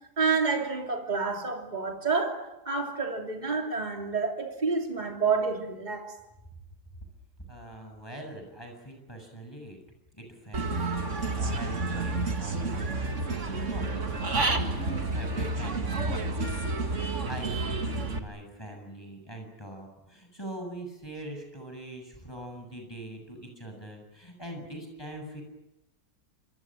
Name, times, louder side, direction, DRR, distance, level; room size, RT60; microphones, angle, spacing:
voice 1, 0.2-6.2, right 4 dB, 30° right, 3.2 m, -29 dB
voice 2, 7.5-9.8 10.1-25.4, right 1 dB, 15° left, 7.4 m, -42 dB
Human voice / Bird, 10.5-18.2, right 3 dB, 55° right, 2.5 m, -30 dB
28.0 x 25.0 x 7.6 m
omnidirectional pair, 1.6 m